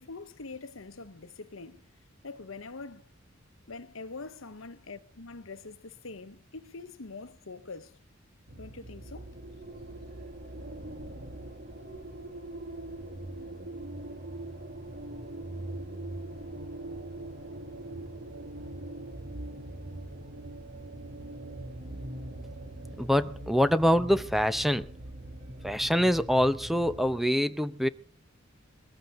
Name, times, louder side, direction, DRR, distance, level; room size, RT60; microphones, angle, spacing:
voice 1, 0.0-1.9 2.2-3.1 3.7-8.0 8.6-9.4, left 3 dB, 75° left, 1.1 m, -44 dB
sound 1, 8.5-27.2, right 1 dB, 50° right, 2.3 m, -42 dB
voice 2, 23.0-24.9 25.6-27.9, equal, ahead, 0.7 m, -25 dB
22.0 x 15.0 x 3.8 m
head